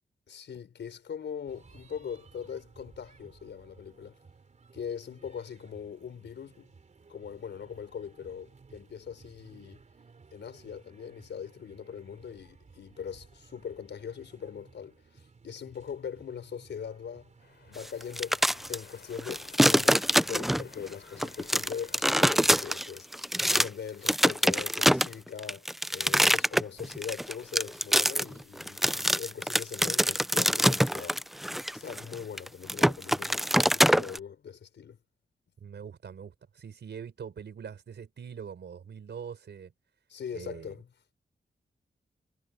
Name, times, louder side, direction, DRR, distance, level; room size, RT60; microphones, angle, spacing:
voice 1, 0.3-4.2 4.7-6.7 7.1-9.8 10.3-17.3 17.7-18.4 18.7-31.2 31.7-35.0 40.1-40.9, left 7 dB, 85° left, 5.4 m, -41 dB
sound 1, 1.5-18.8, right 4 dB, 40° right, 3.4 m, -57 dB
sound 2, 17.4-22.7, left 6 dB, 70° left, 6.2 m, -54 dB
sound 3, 18.0-18.8 19.2-20.8 21.2-23.7 24.1-34.2, equal, ahead, 0.3 m, -24 dB
voice 2, 35.6-39.7 40.3-40.8, right 7 dB, 75° right, 5.4 m, -43 dB
wide cardioid pair, 140°, 18 cm